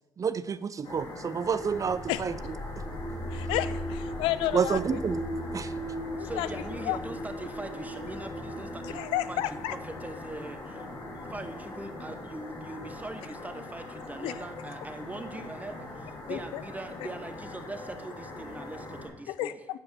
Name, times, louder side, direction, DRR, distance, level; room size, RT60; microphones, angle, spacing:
voice 1, 0.2-2.3 4.5-5.2 5.5-5.7, right 6 dB, 40° right, 0.4 m, -29 dB
sound 1, 0.8-19.1, left 2 dB, 75° left, 3.3 m, -42 dB
sound 2, 1.5-13.3, equal, 10° left, 1.7 m, -39 dB
voice 2, 3.3-5.0 6.1-6.5 6.8-7.0 8.8-9.7 14.2-14.4 16.3-16.6 19.3-19.8, left 14 dB, 90° left, 0.5 m, -31 dB
voice 3, 6.2-9.4 9.7-10.9 11.2-19.6, right 2 dB, 15° right, 1.1 m, -41 dB
8.0 x 5.1 x 7.3 m
supercardioid pair, 70°, 9 cm